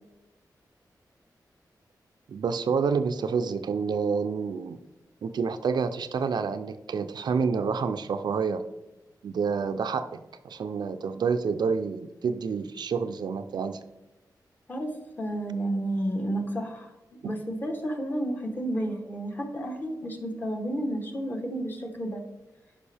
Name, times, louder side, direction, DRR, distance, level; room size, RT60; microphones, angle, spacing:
voice 1, 2.3-4.8 5.2-8.6 9.2-10.1 10.4-13.8 17.2-17.3, right 5 dB, 75° right, 9 dB, 0.5 m, -28 dB
voice 2, 14.7-22.2, right 1 dB, 25° left, 4 dB, 1.0 m, -31 dB
10.5 x 5.1 x 3.4 m, 1.0 s
wide cardioid pair, 175°, 7 cm